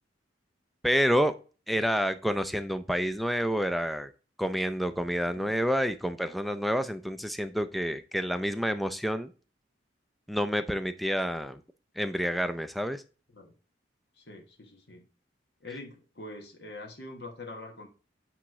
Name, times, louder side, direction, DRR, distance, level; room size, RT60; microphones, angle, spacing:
voice 1, 0.8-1.3 1.7-4.1 4.4-9.3 10.3-11.6 12.0-13.0, equal, ahead, 10 dB, 0.4 m, -28 dB
voice 2, 14.1-15.1 15.6-17.9, left 2 dB, 55° left, 2 dB, 1.2 m, -44 dB
8.6 x 3.1 x 4.7 m, 0.35 s
head